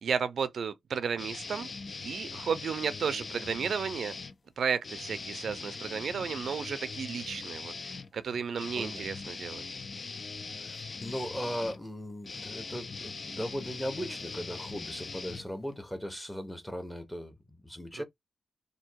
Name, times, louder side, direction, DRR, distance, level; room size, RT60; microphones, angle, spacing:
voice 1, 0.0-1.7 2.0-4.1 4.6-9.6 17.9-18.0, right 6 dB, 70° right, 0.4 m, -33 dB
sound 1, 1.2-4.3 4.8-16.0, left 4 dB, 35° left, 0.4 m, -41 dB
voice 2, 8.8-9.1 10.6-18.0, equal, 5° left, 0.9 m, -38 dB
3.5 x 2.7 x 4.5 m
wide cardioid pair, 165°, 0 cm